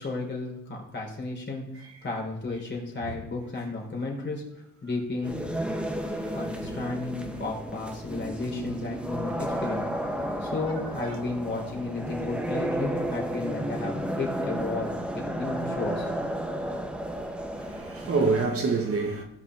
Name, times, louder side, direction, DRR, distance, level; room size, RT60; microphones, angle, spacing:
voice 1, 0.0-4.4 4.8-5.4 6.3-9.8 10.4-16.1, left 3 dB, 35° left, 3.7 m, -33 dB
sound 1, 5.2-18.5, equal, 5° right, 1.2 m, -32 dB
voice 2, 17.6-19.2, right 4 dB, 50° right, 1.8 m, -27 dB
17.5 x 5.8 x 3.7 m
cardioid pair, 90°, 30 cm